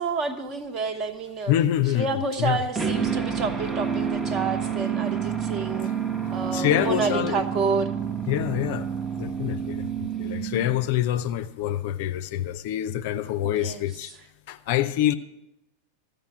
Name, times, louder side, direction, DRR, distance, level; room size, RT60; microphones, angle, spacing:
voice 1, 0.0-1.5 1.9-5.9 6.3-7.9 13.4-13.8, right 4 dB, 30° right, 1.1 m, -29 dB
voice 2, 1.5-2.7 6.5-7.5 8.3-8.9 9.2-14.1 14.5-15.1, left 12 dB, 50° left, 0.5 m, -26 dB
sound 1, 2.8-11.0, right 7 dB, 10° right, 0.8 m, -29 dB
14.0 x 5.1 x 8.8 m
figure-of-eight pair, 90°, 0 cm